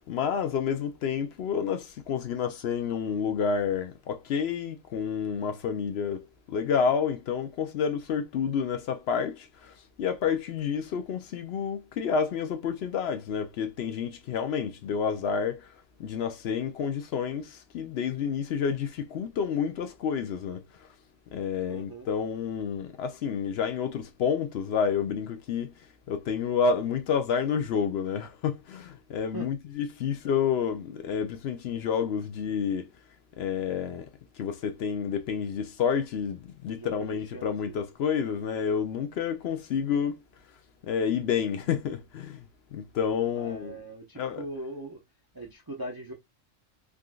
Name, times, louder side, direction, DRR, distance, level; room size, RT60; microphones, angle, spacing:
voice 1, 0.1-15.7 16.0-20.6 21.3-25.7 26.1-32.9 33.4-34.1 34.4-40.2 40.8-42.4 42.7-43.8 44.2-44.5, left 7 dB, 65° left, 0.7 m, -29 dB
voice 2, 21.7-22.1 29.3-29.5 36.7-37.8 43.3-45.0 45.3-46.1, right 1 dB, 20° right, 0.6 m, -40 dB
3.7 x 2.5 x 2.3 m
omnidirectional pair, 1.3 m